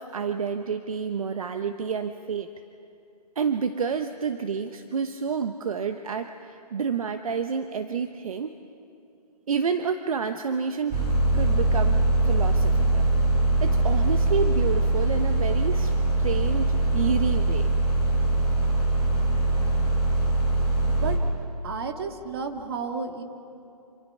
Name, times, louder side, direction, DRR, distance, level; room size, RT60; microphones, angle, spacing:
voice 1, 0.0-2.5 3.3-8.5 9.5-11.0 11.3-12.0 12.2-13.1 13.6-15.9 16.2-17.7, right 6 dB, 60° right, 8 dB, 1.0 m, -29 dB
sound 1, 10.9-21.2, right 2 dB, 15° right, 4.2 m, -22 dB
voice 2, 21.6-23.2, right 5 dB, 40° right, 5 dB, 2.0 m, -32 dB
27.0 x 27.0 x 5.6 m, 2.6 s
hypercardioid pair, 160°, 21 cm